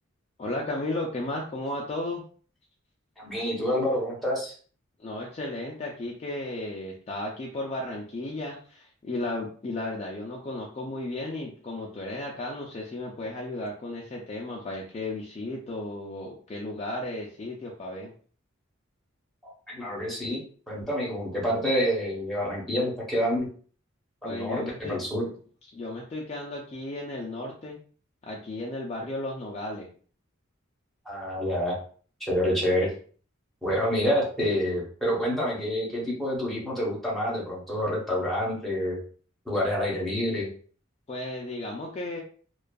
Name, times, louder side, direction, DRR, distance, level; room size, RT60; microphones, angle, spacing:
voice 1, 0.4-2.3 5.0-18.1 24.2-25.0 25.2-25.3 25.7-27.8 28.2-29.9 41.1-42.2, left 2 dB, 30° left, -2 dB, 0.3 m, -34 dB
voice 2, 3.2-4.5 19.4-20.4 20.7-23.5 24.2-24.6 24.9-25.2 31.1-31.8 32.2-32.9 33.6-39.0 39.5-40.5, equal, ahead, -6 dB, 0.8 m, -27 dB
2.5 x 2.3 x 2.2 m, 0.43 s
head